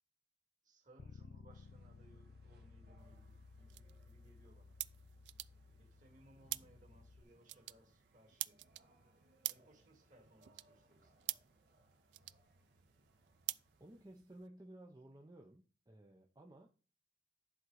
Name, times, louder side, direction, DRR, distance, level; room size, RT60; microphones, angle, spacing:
voice 1, 0.6-4.7 5.6-8.6 9.4-11.4, right 1 dB, 45° right, 2.6 m, -66 dB
Bass guitar, 1.0-7.2, left 4 dB, 80° left, 0.5 m, -58 dB
sound 1, 1.5-14.0, right 1 dB, 60° right, 1.5 m, -71 dB
sound 2, 3.0-14.5, right 18 dB, 80° right, 0.3 m, -49 dB
voice 2, 13.8-16.7, right 1 dB, 20° right, 0.7 m, -56 dB
11.0 x 3.9 x 4.8 m
head